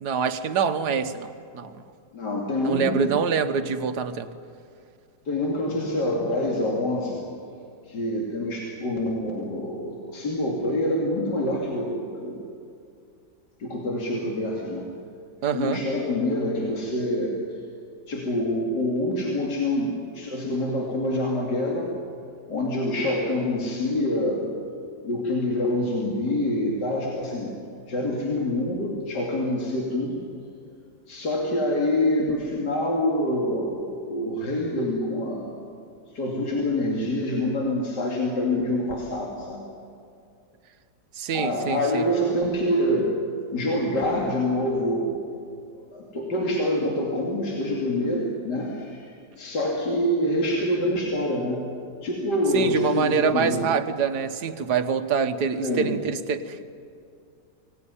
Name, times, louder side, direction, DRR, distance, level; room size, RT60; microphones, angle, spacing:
voice 1, 0.0-1.8 2.6-4.3 15.4-15.8 41.1-42.0 52.5-56.6, right 6 dB, 65° right, 8 dB, 1.6 m, -25 dB
voice 2, 2.1-3.1 5.2-7.2 7.9-12.4 13.6-14.9 15.5-17.4 18.1-21.9 22.5-24.5 25.0-27.5 27.8-30.2 31.1-35.5 36.1-39.6 41.3-43.2 43.5-45.2 45.7-51.7 52.0-53.6 55.6-56.0, left 1 dB, 70° left, -2 dB, 3.2 m, -26 dB
23.5 x 18.5 x 9.8 m, 2.4 s
omnidirectional pair, 1.9 m